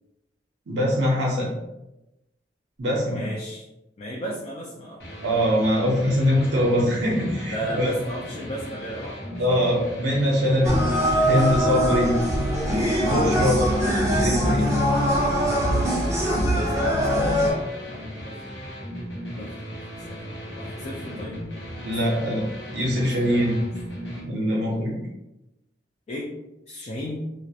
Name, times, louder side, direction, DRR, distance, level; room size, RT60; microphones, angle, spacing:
voice 1, 0.7-1.5 2.8-3.2 5.2-7.9 9.4-10.8 11.2-12.1 13.0-13.6 14.1-14.8 21.0-21.1 21.8-22.5 22.7-23.6 24.2-25.0, equal, 65° right, -4 dB, 0.5 m, -23 dB
voice 2, 3.1-3.6 4.0-5.0 7.5-9.4 16.5-18.4 19.4-19.6 20.0-21.4 21.9-22.2 23.3-23.5 26.1-26.3 26.7-27.2, equal, 35° left, -2 dB, 0.3 m, -35 dB
sound 1, 5.0-24.2, equal, 65° left, 0.7 m, -37 dB
sound 2, 10.6-17.5, equal, 15° right, 0.5 m, -22 dB
2.3 x 2.0 x 2.7 m, 0.93 s
head